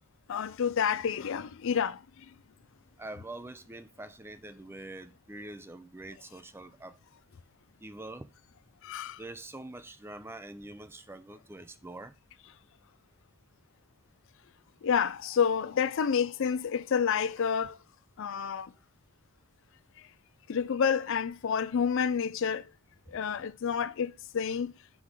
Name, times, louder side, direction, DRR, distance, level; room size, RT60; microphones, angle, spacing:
voice 1, 0.3-2.3 8.8-9.2 14.8-17.8 18.2-18.7 20.0-20.1 20.5-22.7 23.1-24.7, left 7 dB, 60° left, 0.4 m, -29 dB
voice 2, 3.0-7.0 7.8-8.3 9.2-12.1, right 2 dB, 10° right, 0.4 m, -44 dB
6.1 x 4.8 x 3.7 m
head